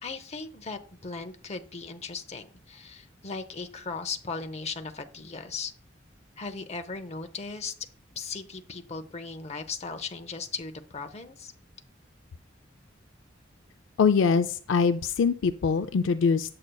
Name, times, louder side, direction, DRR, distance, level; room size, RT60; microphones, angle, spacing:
voice 1, 0.0-5.7 6.4-7.7 8.2-11.5, left 4 dB, 35° left, 7 dB, 0.7 m, -37 dB
voice 2, 14.0-16.6, left 5 dB, 75° left, 9 dB, 0.4 m, -23 dB
8.2 x 7.7 x 2.3 m, 0.42 s
head